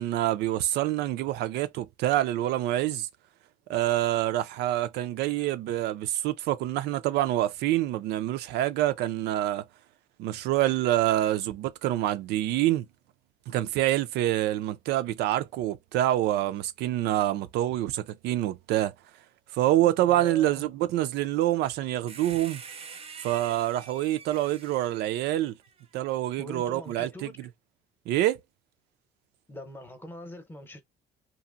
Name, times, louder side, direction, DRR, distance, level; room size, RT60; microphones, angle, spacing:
voice 1, 0.0-3.1 3.7-9.7 10.2-12.9 13.5-18.9 19.5-22.6 23.2-25.5 25.9-27.5 28.1-28.4, right 14 dB, 80° right, 0.4 m, -26 dB
voice 2, 20.0-20.7 26.4-27.3 29.5-30.8, left 1 dB, 10° left, 0.8 m, -42 dB
sound 1, 22.1-25.9 26.9-27.0, right 5 dB, 35° right, 0.5 m, -46 dB
2.8 x 2.6 x 2.5 m
cardioid pair, 110°, 17 cm